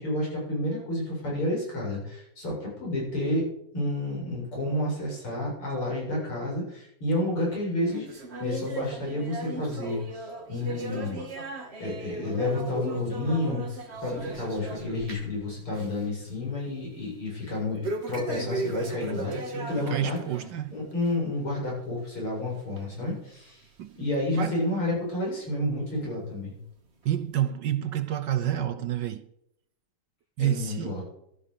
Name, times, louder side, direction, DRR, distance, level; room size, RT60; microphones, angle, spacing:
voice 1, 0.0-3.5 3.7-11.2 11.8-17.8 18.1-20.2 20.7-23.6 24.0-26.6 30.4-31.0, left 1 dB, 75° left, 8.5 m, -30 dB
sound 1, 7.9-15.4 15.7-16.1 16.4-16.5 17.8-20.5 20.9-21.1 21.8-21.9 22.8-22.9 23.6-23.7, right 2 dB, 30° right, 1.8 m, -36 dB
voice 2, 19.8-20.8 23.8-24.0 24.3-24.6 27.0-29.3 30.4-31.0, right 11 dB, 65° right, 1.2 m, -29 dB
13.5 x 12.5 x 6.8 m
omnidirectional pair, 2.4 m